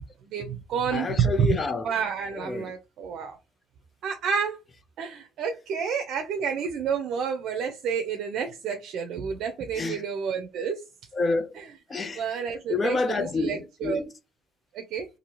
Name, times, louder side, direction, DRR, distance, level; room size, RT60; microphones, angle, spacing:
voice 1, 0.2-1.3 1.8-3.4 4.0-4.6 5.0-10.8 12.2-14.0 14.7-15.1, right 6 dB, 65° right, 0.6 m, -30 dB
voice 2, 0.9-1.9 2.3-2.7 9.7-10.1 11.1-11.6 11.9-12.4 12.7-14.1, left 3 dB, 30° left, 0.6 m, -29 dB
2.8 x 2.7 x 3.0 m
cardioid pair, 105°, 0 cm